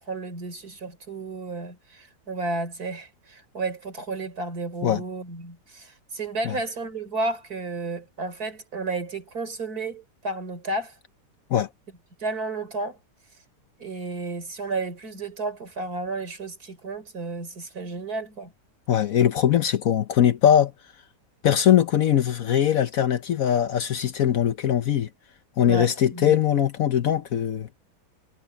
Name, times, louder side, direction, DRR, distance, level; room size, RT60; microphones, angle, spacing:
voice 1, 0.0-10.9 12.2-13.0 13.8-18.5 25.6-26.3, right 3 dB, 60° right, 4.1 m, -32 dB
voice 2, 18.9-20.7 21.4-25.1 25.6-27.7, left 10 dB, 60° left, 1.1 m, -21 dB
omnidirectional pair, 1.8 m